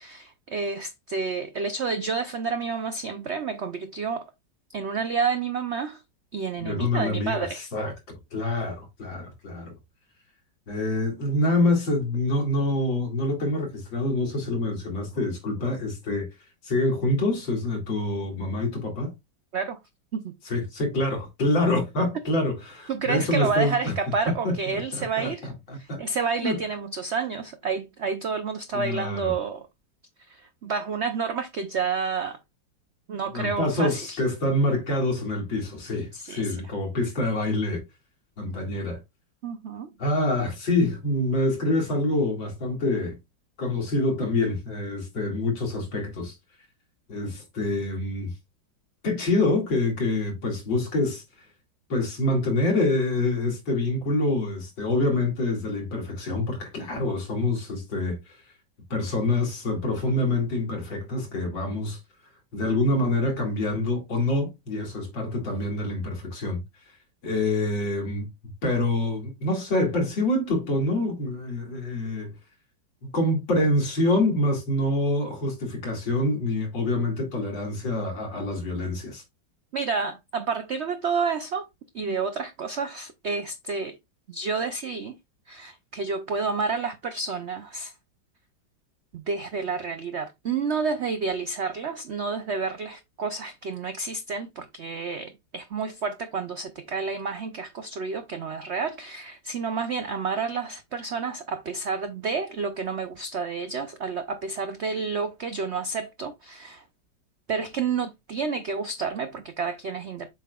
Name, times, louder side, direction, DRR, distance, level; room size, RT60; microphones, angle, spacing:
voice 1, 0.0-4.3 4.7-6.0 6.3-7.7 19.5-19.8 20.1-20.3 22.1-22.2 22.9-25.5 25.8-29.7 30.3-32.4 33.1-34.2 36.1-36.6 39.4-39.9 79.7-81.7 81.9-84.0 84.3-85.1 85.5-87.9 89.1-106.8 107.5-110.3, right 5 dB, 80° right, 0.6 m, -30 dB
voice 2, 6.6-7.9 8.3-9.7 10.7-16.3 16.6-19.1 20.5-23.9 24.3-26.0 26.4-26.6 28.7-29.3 33.3-37.8 38.4-39.0 40.0-43.1 43.6-46.3 47.1-48.3 49.0-51.2 51.9-58.2 58.9-62.0 62.5-66.6 67.2-68.3 68.6-72.3 73.0-79.2, left 2 dB, 85° left, 3.1 m, -26 dB
7.4 x 5.7 x 2.3 m
omnidirectional pair, 2.0 m